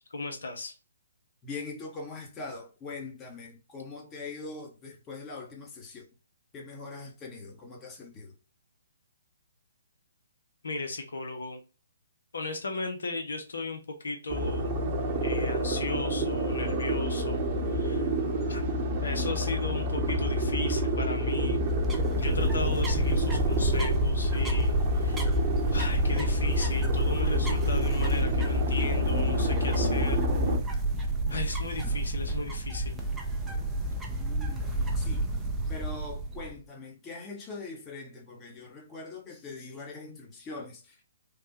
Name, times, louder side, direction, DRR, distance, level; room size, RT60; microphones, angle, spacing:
voice 1, 0.1-0.7 10.6-11.6 12.3-14.7 15.2-18.1 18.5-18.6 19.0-21.6 22.2-25.4 25.7-30.2 31.3-33.0, left 3 dB, 70° left, 0.6 m, -36 dB
voice 2, 1.4-6.0 6.5-8.3 34.2-35.3 35.7-41.0, left 3 dB, 20° left, 0.9 m, -42 dB
sound 1, 14.3-30.6, left 1 dB, 30° right, 0.8 m, -28 dB
sound 2, 21.4-36.6, right 2 dB, 10° right, 0.5 m, -30 dB
3.3 x 2.1 x 2.9 m
figure-of-eight pair, 135°, 0 cm